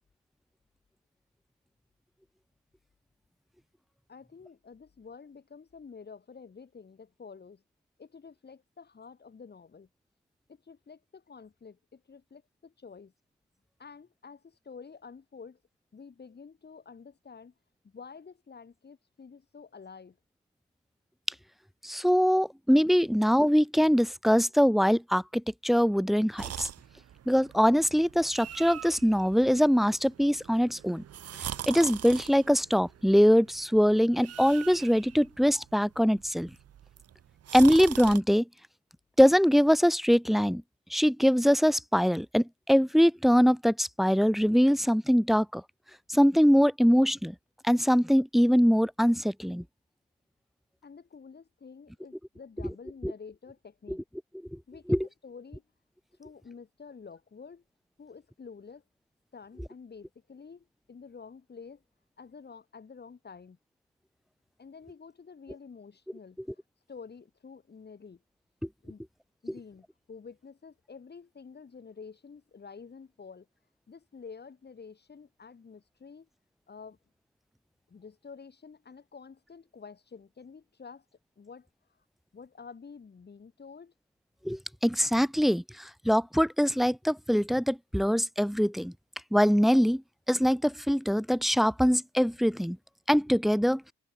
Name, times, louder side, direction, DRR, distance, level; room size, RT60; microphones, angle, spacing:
voice 1, 4.1-7.6 8.0-9.9 10.5-13.1 13.8-15.6 15.9-17.5 17.8-20.2 50.8-54.0 54.7-55.6 56.2-57.6 58.0-58.8 59.3-61.8 62.2-63.6 64.6-66.4 66.9-68.2 68.8-69.0 69.4-73.5 73.9-76.3 76.7-77.0 77.9-81.0 81.4-81.7 82.3-83.9, left 5 dB, 35° left, 3.1 m, -49 dB
voice 2, 21.8-26.7 27.3-31.0 31.7-36.5 37.5-38.4 39.2-40.6 40.9-45.6 46.1-47.3 47.7-49.6 53.0-53.1 54.9-55.1 84.5-88.9 89.3-90.0 90.3-92.8 93.1-93.8, equal, ahead, 0.4 m, -23 dB
sound 1, 26.4-38.2, right 10 dB, 55° right, 1.1 m, -43 dB
cardioid pair, 90°, 30 cm